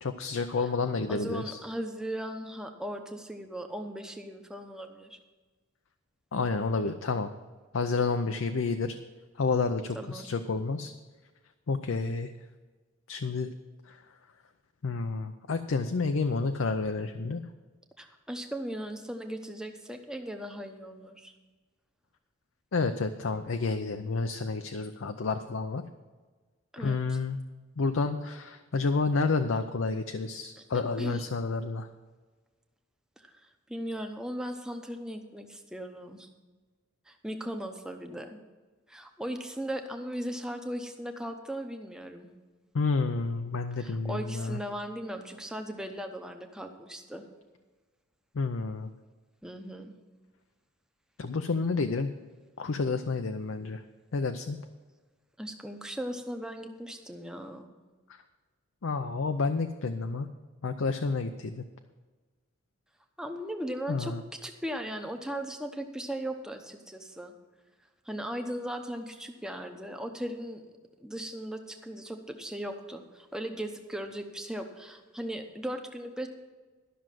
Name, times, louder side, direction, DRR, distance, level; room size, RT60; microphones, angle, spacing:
voice 1, 0.0-1.6 6.3-7.3 7.7-9.0 9.4-10.9 11.7-12.3 13.1-13.5 13.9-14.0 14.8-17.4 22.7-25.8 26.8-27.4 27.8-31.9 42.7-44.6 48.3-48.9 51.2-52.1 52.6-53.8 54.1-54.6 58.8-60.3 60.6-61.6 63.9-64.2, left 4 dB, 70° left, 7 dB, 0.5 m, -30 dB
voice 2, 1.1-5.2 9.9-10.3 18.0-21.3 26.7-27.2 30.6-30.7 31.0-31.2 33.2-33.4 33.7-36.3 37.1-38.4 38.9-42.3 43.8-47.2 49.4-49.9 55.4-57.7 63.2-67.3 68.1-70.6 71.0-76.3, equal, 5° right, 5 dB, 0.8 m, -38 dB
12.5 x 6.2 x 7.5 m, 1.3 s
head